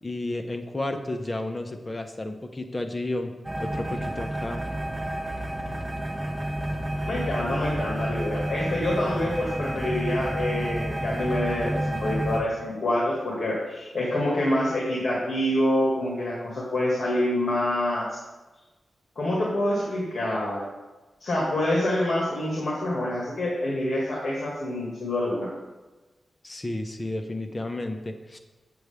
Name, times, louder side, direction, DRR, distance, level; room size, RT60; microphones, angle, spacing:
voice 1, 0.0-3.3 3.6-4.7 26.4-28.4, left 2 dB, 25° left, 5 dB, 0.8 m, -32 dB
sound 1, 3.4-12.4, right 1 dB, 20° right, 1.0 m, -30 dB
voice 2, 7.0-18.2 19.2-20.7 21.2-25.5, left 1 dB, 60° left, -4 dB, 1.9 m, -26 dB
7.9 x 7.8 x 3.5 m, 1.2 s
wide cardioid pair, 95°, 0 cm